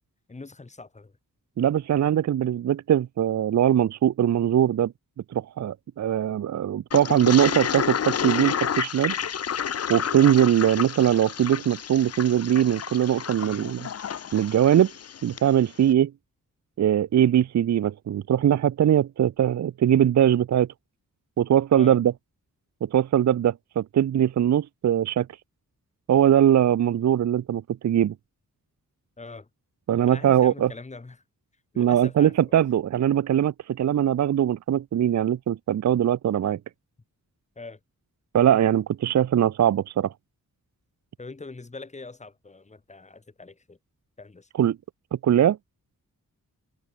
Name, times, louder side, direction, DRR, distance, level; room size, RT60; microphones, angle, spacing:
voice 1, 0.3-1.1 13.4-13.7 21.7-22.0 29.2-29.5 30.1-31.2 31.7-32.3 37.6-37.8 41.2-43.8 44.2-44.5, left 3 dB, 20° left, 1.1 m, -42 dB
voice 2, 1.6-4.9 5.3-9.1 9.9-13.9 14.3-14.9 15.2-16.1 16.8-20.7 21.4-22.1 22.8-25.3 26.1-28.1 29.9-30.7 31.8-36.6 38.3-40.1 44.5-44.8 45.1-45.6, right 10 dB, 55° right, 0.4 m, -21 dB
Toilet flush, 6.9-15.5, left 8 dB, 45° left, 0.6 m, -30 dB
wide cardioid pair, 130°, 33 cm